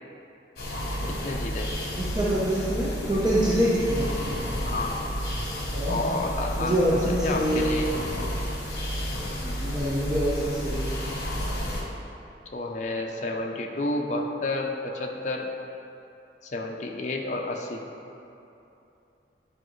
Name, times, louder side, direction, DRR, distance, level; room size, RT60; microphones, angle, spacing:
sound 1, 0.6-11.8, equal, 55° left, 1.2 m, -31 dB
voice 1, 1.1-1.7 4.6-5.1 5.9-8.0 12.5-15.5 16.4-17.8, left 2 dB, 40° left, 1 dB, 0.5 m, -30 dB
voice 2, 2.0-4.1 5.7-6.0 6.6-7.6 9.3-10.9, equal, 20° right, -8 dB, 0.7 m, -25 dB
10.0 x 4.9 x 3.1 m, 2.9 s
head